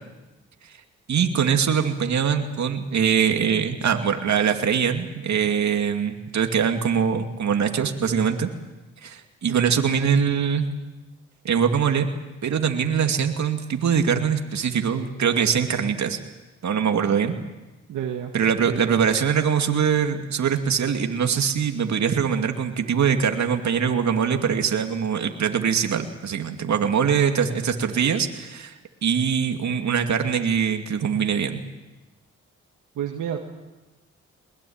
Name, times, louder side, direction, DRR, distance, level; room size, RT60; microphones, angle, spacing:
voice 1, 1.1-8.5 9.0-10.7 11.4-12.1 12.4-16.2 16.6-17.4 18.3-28.7 29.0-31.6, right 7 dB, 65° right, 5 dB, 2.6 m, -23 dB
voice 2, 9.5-9.8 17.9-18.3 18.7-18.9 33.0-33.4, right 9 dB, 85° right, 3 dB, 1.9 m, -30 dB
21.5 x 21.5 x 8.8 m, 1.1 s
supercardioid pair, 60°, 30 cm